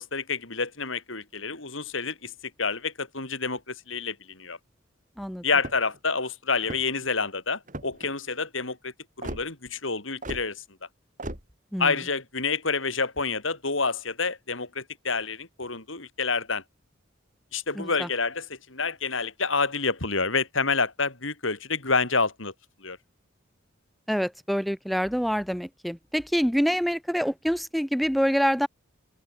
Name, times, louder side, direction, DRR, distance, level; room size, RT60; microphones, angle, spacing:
voice 1, 0.0-2.3 2.6-4.6 5.4-10.6 11.8-16.6 17.5-22.5 22.8-23.0, left 4 dB, 70° left, 5.0 m, -28 dB
sound 1, 5.5-6.0 6.6-7.1 7.7-8.1 9.2-9.4 10.2-10.5 11.2-11.4, right 1 dB, 40° right, 6.8 m, -36 dB
voice 2, 17.7-18.1 24.1-28.7, equal, ahead, 4.6 m, -26 dB
open air
head